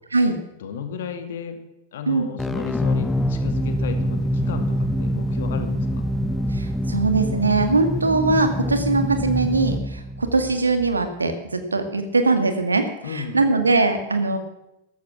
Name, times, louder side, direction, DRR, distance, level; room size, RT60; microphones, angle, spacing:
voice 1, 0.6-1.6 1.9-6.1 13.0-13.5, left 6 dB, 60° left, 7 dB, 2.1 m, -34 dB
sound 1, 2.4-11.1, equal, 10° left, 0.9 m, -25 dB
voice 2, 6.5-12.8 13.1-14.4, right 3 dB, 80° right, 7 dB, 1.9 m, -21 dB
13.5 x 13.5 x 6.0 m, 0.92 s
figure-of-eight pair, 90°, 0 cm